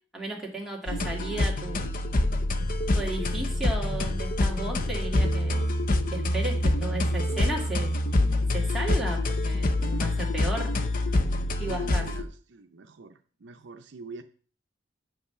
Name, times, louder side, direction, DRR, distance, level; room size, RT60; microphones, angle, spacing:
voice 1, 0.1-1.9 2.9-5.7 6.1-8.0 8.5-10.7 11.6-12.1, right 2 dB, ahead, -3 dB, 1.9 m, -34 dB
sound 1, 0.9-12.2, left 1 dB, 45° left, 0.6 m, -26 dB
voice 2, 6.8-7.4 11.6-14.2, right 3 dB, 65° right, 7 dB, 0.6 m, -45 dB
7.4 x 5.7 x 5.6 m, 0.43 s
head